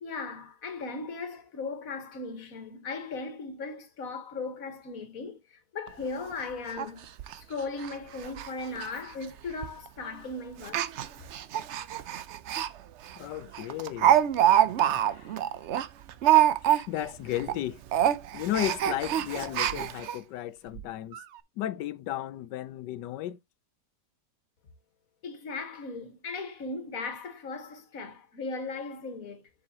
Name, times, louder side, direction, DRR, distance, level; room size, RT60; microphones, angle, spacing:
voice 1, 0.0-7.1 7.4-10.8 25.2-29.5, left 3 dB, 55° left, 1.7 m, -37 dB
Speech, 5.9-6.0 6.3-6.4 6.8-6.9 7.2-7.4 7.8-7.9 8.2-8.5 8.8-8.9 9.6-9.9 10.6-12.7 13.1-13.2 13.5-17.1 17.4-17.6 17.9-20.2 20.8-20.9 21.1-21.2, right 11 dB, 65° right, 0.7 m, -25 dB
voice 2, 13.2-14.2 14.5-15.4 16.6-17.8 18.3-21.2 21.6-23.4, left 13 dB, 85° left, 1.3 m, -34 dB
7.1 x 6.7 x 2.8 m
omnidirectional pair, 1.8 m